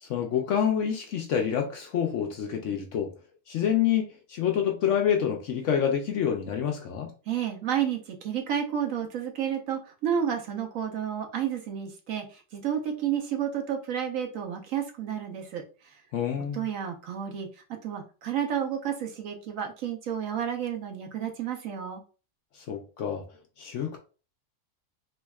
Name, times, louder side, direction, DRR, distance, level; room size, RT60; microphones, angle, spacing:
voice 1, 0.0-3.1 3.5-7.1 16.1-16.7 22.6-23.2 23.6-24.0, left 8 dB, 65° left, 0.7 m, -27 dB
voice 2, 7.3-15.6 16.4-17.5 17.8-22.0, right 9 dB, 65° right, 1.0 m, -31 dB
3.5 x 3.0 x 2.3 m
omnidirectional pair, 1.7 m